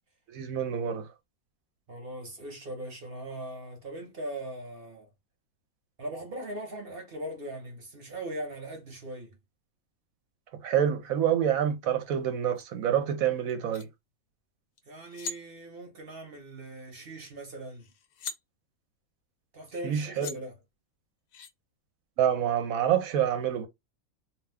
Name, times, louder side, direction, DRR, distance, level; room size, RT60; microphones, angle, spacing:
voice 1, 0.3-1.1 10.6-13.9 19.8-20.4 22.2-23.7, right 9 dB, 70° right, 1.0 m, -27 dB
voice 2, 1.9-5.1 6.0-9.4 14.8-17.9 19.5-20.5, right 1 dB, 45° right, 1.0 m, -40 dB
sound 1, 12.5-12.6 13.5-13.8 14.8-14.9 15.1-15.4 17.3-17.4 17.7-18.4 19.8-19.9 20.2-20.4 21.3-21.5, left 5 dB, 75° left, 1.0 m, -40 dB
2.7 x 2.2 x 3.3 m
omnidirectional pair, 1.6 m